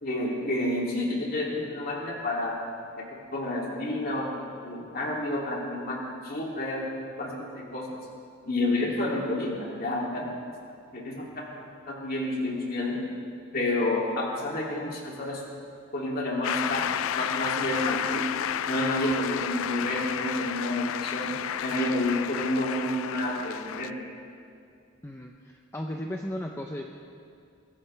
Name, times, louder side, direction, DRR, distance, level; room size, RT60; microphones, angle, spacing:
voice 1, 0.0-2.6 3.0-6.8 7.2-8.0 8.4-10.3 10.9-13.0 13.5-15.4 15.9-18.3 18.7-24.0, left 1 dB, 45° left, -3 dB, 2.8 m, -30 dB
Shout / Cheering / Applause, 16.4-23.9, left 9 dB, 75° left, 0.4 m, -31 dB
voice 2, 25.0-26.9, left 1 dB, 10° left, 1 dB, 0.6 m, -35 dB
22.5 x 17.0 x 3.4 m, 2.4 s
head